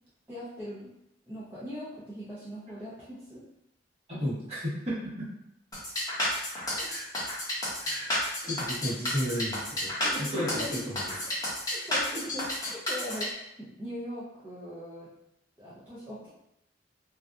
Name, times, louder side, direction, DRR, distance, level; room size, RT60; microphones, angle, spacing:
voice 1, 0.3-0.9 1.3-3.4 10.0-10.8 11.7-15.1 15.6-16.3, equal, 10° right, -12 dB, 0.6 m, -40 dB
voice 2, 4.1-5.2 6.9-7.1 7.8-8.1 8.4-9.9 10.2-11.1, equal, 35° right, -10 dB, 1.2 m, -33 dB
sound 1, 5.7-13.3, left 1 dB, 20° left, 0.8 m, -31 dB
2.6 x 2.3 x 2.3 m, 0.80 s
head